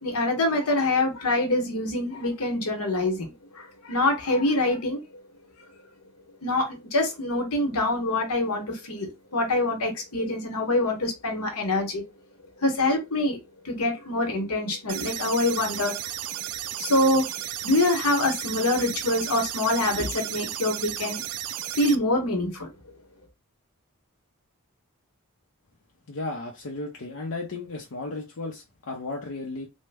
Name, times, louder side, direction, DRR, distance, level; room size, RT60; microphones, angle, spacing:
voice 1, 0.0-3.3 3.5-5.2 6.4-12.0 12.6-13.4 13.6-16.0 16.8-21.2 21.7-22.7, left 2 dB, 85° left, 1.0 m, -25 dB
sound 1, 14.9-21.9, right 12 dB, 85° right, 0.4 m, -34 dB
voice 2, 26.1-29.7, left 2 dB, 65° left, 0.6 m, -34 dB
3.1 x 2.1 x 3.4 m
head